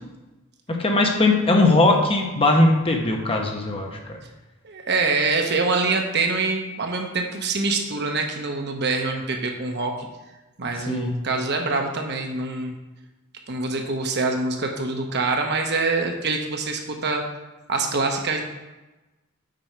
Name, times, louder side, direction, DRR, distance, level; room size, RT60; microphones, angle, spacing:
voice 1, 0.7-4.2 10.9-11.1, left 2 dB, 25° left, 2 dB, 1.0 m, -19 dB
voice 2, 4.6-10.1 10.6-12.7 13.5-17.2 17.7-18.4, right 3 dB, 50° right, 3 dB, 1.0 m, -25 dB
7.7 x 5.4 x 4.5 m, 1.1 s
head